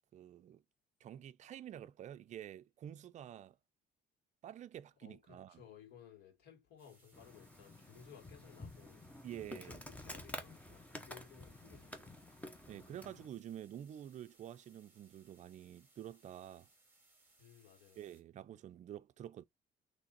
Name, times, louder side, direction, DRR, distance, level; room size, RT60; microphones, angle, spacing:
voice 1, 0.1-0.6 1.0-3.6 4.4-5.6 9.2-9.8 12.7-16.7 18.0-19.4, right 11 dB, 45° right, 0.4 m, -49 dB
voice 2, 5.0-9.1 9.6-12.4 17.4-18.2, left 8 dB, 75° left, 2.0 m, -59 dB
sound 1, 6.8-18.2, right 2 dB, 10° right, 2.4 m, -69 dB
Insect, 7.1-13.3, left 1 dB, 10° left, 0.9 m, -50 dB
3.9 x 3.2 x 4.0 m
cardioid pair, 110°, 17 cm